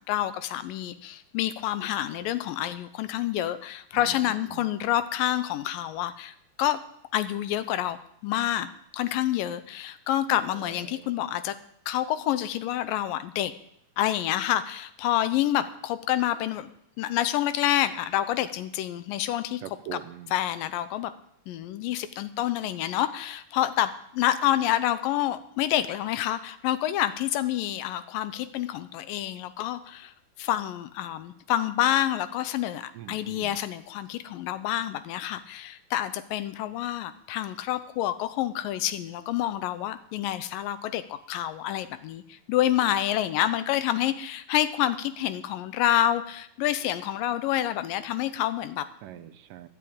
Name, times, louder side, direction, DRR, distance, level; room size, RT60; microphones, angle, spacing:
voice 1, 0.1-6.8 7.1-11.6 11.9-13.5 14.0-16.7 17.0-19.6 20.3-21.1 21.5-48.8, left 12 dB, 85° left, 13 dB, 2.4 m, -28 dB
voice 2, 4.0-4.7 10.5-11.2 19.6-20.3 32.9-33.6 49.0-49.7, right 10 dB, 80° right, 10 dB, 2.4 m, -43 dB
12.0 x 8.4 x 8.8 m, 0.71 s
omnidirectional pair, 3.9 m